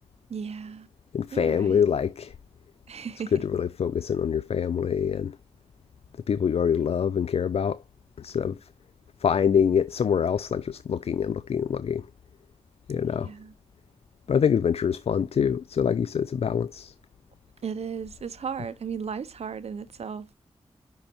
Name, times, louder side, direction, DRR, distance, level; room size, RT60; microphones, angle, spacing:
voice 1, 0.3-0.9 1.3-1.8 2.9-3.3 13.2-13.5 17.6-20.3, right 6 dB, 80° right, 0.9 m, -35 dB
voice 2, 1.1-2.3 3.3-5.4 6.3-7.8 8.2-8.7 9.2-12.1 12.9-13.3 14.3-16.9, left 7 dB, 70° left, 0.4 m, -25 dB
5.7 x 5.5 x 4.3 m
wide cardioid pair, 65°, 11 cm